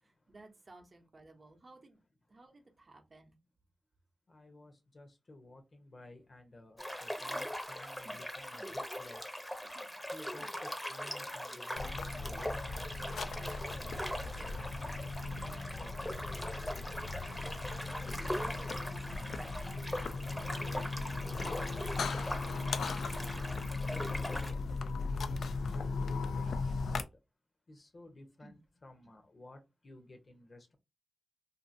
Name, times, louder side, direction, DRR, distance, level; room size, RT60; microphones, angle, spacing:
voice 1, 0.0-2.0 2.3-3.4 8.0-8.2 8.6-8.8 9.6-10.0 10.4-10.6 16.1-16.3 17.9-22.2 28.4-28.6, right 2 dB, 40° right, 0.7 m, -56 dB
voice 2, 4.3-9.3 10.1-12.6 13.2-16.1 23.1-27.1 27.7-30.8, left 2 dB, 45° left, 0.7 m, -55 dB
sound 1, 6.8-24.5, equal, 5° left, 0.7 m, -41 dB
sound 2, 11.8-27.0, left 3 dB, 80° left, 0.3 m, -38 dB
2.7 x 2.6 x 2.6 m
cardioid pair, 75°, 0 cm